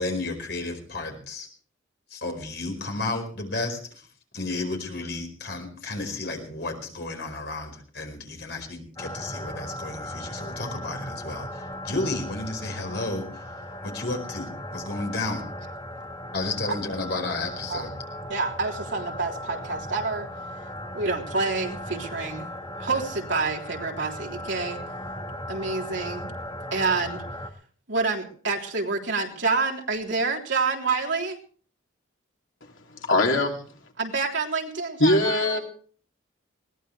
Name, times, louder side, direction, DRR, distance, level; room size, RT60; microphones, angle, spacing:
voice 1, 0.0-1.5 2.1-4.1 4.3-15.4 16.3-17.9, left 2 dB, 55° left, 4 dB, 4.9 m, -32 dB
sound 1, 9.0-27.5, equal, 20° left, 1.6 m, -37 dB
voice 2, 18.3-20.3 20.9-22.5 22.8-24.8 25.5-26.3 26.7-27.2 27.9-31.4 34.0-35.6, right 4 dB, 60° right, 0 dB, 3.5 m, -28 dB
voice 3, 33.0-33.6 35.0-35.6, left 2 dB, 75° left, 2 dB, 2.9 m, -21 dB
21.0 x 18.5 x 3.3 m, 0.44 s
head